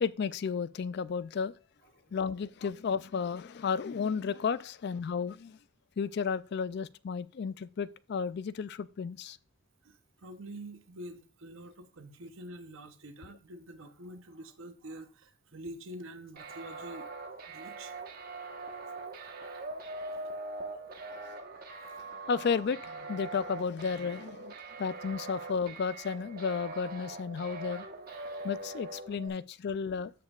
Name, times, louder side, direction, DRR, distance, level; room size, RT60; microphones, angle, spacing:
voice 1, 0.0-1.5 2.1-5.6 6.0-9.4 22.0-27.9 28.4-30.1, left 6 dB, 50° left, 0.3 m, -33 dB
voice 2, 9.8-17.1 17.5-17.9 18.9-20.3, right 1 dB, 60° right, 0.7 m, -47 dB
sound 1, 16.4-29.3, right 2 dB, 40° right, 1.1 m, -42 dB
14.5 x 5.3 x 2.4 m
head